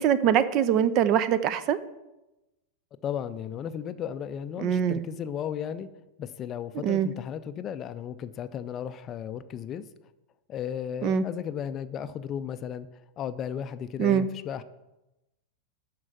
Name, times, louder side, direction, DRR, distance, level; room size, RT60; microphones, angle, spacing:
voice 1, 0.0-1.8 4.6-5.0 6.8-7.1 11.0-11.2 14.0-14.3, right 9 dB, 40° right, 15 dB, 0.6 m, -23 dB
voice 2, 3.0-5.9 6.2-9.9 10.5-12.9 13.2-14.6, left 8 dB, 30° left, 12 dB, 0.5 m, -35 dB
12.5 x 4.6 x 7.3 m, 0.99 s
figure-of-eight pair, 90°, 0 cm